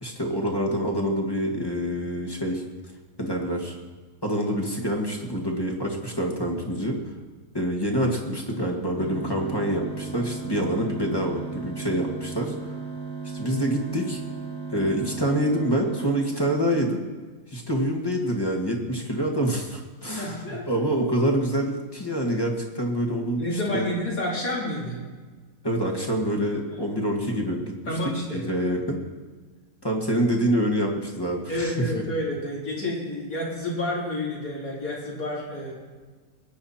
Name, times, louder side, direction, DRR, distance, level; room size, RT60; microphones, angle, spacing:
voice 1, 0.0-2.6 3.2-3.8 4.2-7.0 7.5-12.5 13.3-14.2 14.7-17.0 17.5-23.9 25.6-28.0 28.3-29.0 29.8-31.9, equal, 15° left, 1 dB, 1.9 m, -26 dB
sound 1, 9.0-17.0, right 4 dB, 90° left, 3.1 m, -36 dB
voice 2, 20.1-20.7 23.4-25.0 26.7-26.8 27.9-28.4 31.5-35.7, left 1 dB, 65° left, -4 dB, 4.1 m, -29 dB
21.5 x 9.2 x 4.4 m, 1.4 s
omnidirectional pair, 1.6 m